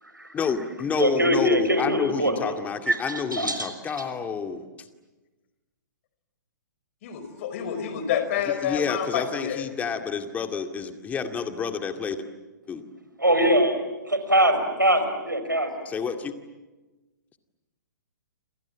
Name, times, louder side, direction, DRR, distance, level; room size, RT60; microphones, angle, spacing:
voice 1, 0.3-4.6 8.5-12.2 12.7-12.8 15.9-16.3, left 6 dB, 15° left, 7 dB, 2.2 m, -29 dB
voice 2, 1.0-2.4 2.9-3.7 13.2-13.8 14.1-15.7, right 1 dB, 90° right, 8 dB, 5.6 m, -22 dB
voice 3, 7.0-9.6, left 9 dB, 45° left, 9 dB, 5.2 m, -28 dB
29.0 x 27.5 x 7.6 m, 1.1 s
figure-of-eight pair, 120°, 10 cm